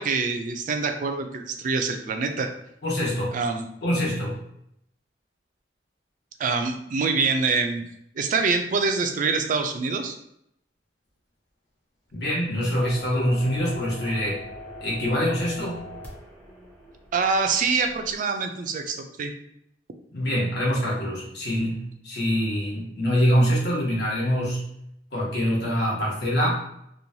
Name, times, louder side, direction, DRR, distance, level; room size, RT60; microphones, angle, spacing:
voice 1, 0.0-2.5 3.3-3.7 6.4-7.8 8.2-10.2 17.1-19.3, right 4 dB, 45° right, 6 dB, 0.3 m, -25 dB
voice 2, 2.8-3.4 3.8-4.4 12.1-14.4 14.8-15.8 20.1-24.6 25.1-26.6, equal, 65° left, -5 dB, 1.0 m, -24 dB
sound 1, 12.8-18.1, left 1 dB, 10° left, 0.6 m, -42 dB
3.0 x 2.2 x 2.6 m, 0.75 s
head